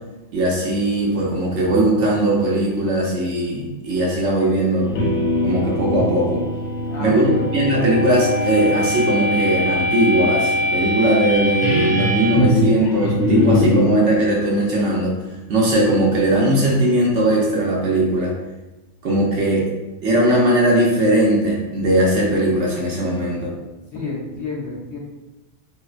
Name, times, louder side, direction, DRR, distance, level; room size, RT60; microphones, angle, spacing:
voice 1, 0.3-4.9 5.4-6.4 7.0-15.2 15.5-18.3 19.0-19.7 20.0-23.5, right 1 dB, 65° right, -3 dB, 0.9 m, -19 dB
sound 1, 4.8-13.9, left 1 dB, 80° left, 1.0 m, -21 dB
voice 2, 6.8-7.8 23.9-25.0, left 3 dB, 65° left, -3 dB, 0.8 m, -31 dB
3.6 x 2.0 x 2.4 m, 1.1 s
omnidirectional pair, 1.5 m